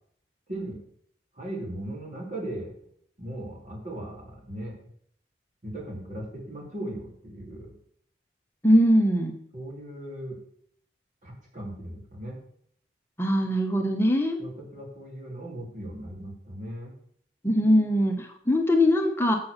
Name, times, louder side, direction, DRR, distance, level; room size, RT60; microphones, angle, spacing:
voice 1, 1.3-2.7 3.2-4.7 5.6-7.7 9.5-10.4 11.2-12.4 14.4-17.0, right 1 dB, 45° right, -3 dB, 2.8 m, -37 dB
voice 2, 8.6-9.3 13.2-14.4 17.4-19.3, equal, 15° left, 3 dB, 1.0 m, -21 dB
7.4 x 6.9 x 6.5 m, 0.66 s
head